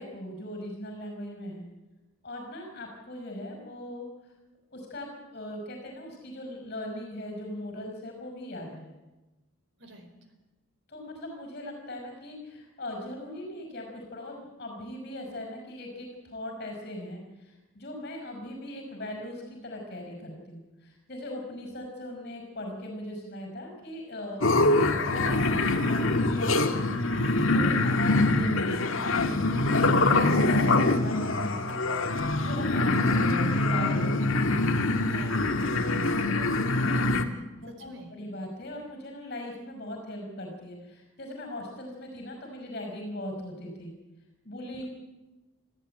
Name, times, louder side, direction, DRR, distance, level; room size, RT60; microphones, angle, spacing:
voice 1, 0.0-1.6 2.2-4.1 4.7-8.9 10.9-26.9 27.5-31.8 32.4-34.2 37.5-43.9 44.4-44.9, left 1 dB, 40° left, 1 dB, 5.7 m, -39 dB
sound 1, 24.4-37.2, left 2 dB, 65° left, 1.9 m, -24 dB
voice 2, 35.0-38.2, right 1 dB, 55° right, 6 dB, 4.5 m, -47 dB
26.5 x 15.0 x 9.1 m, 1.1 s
head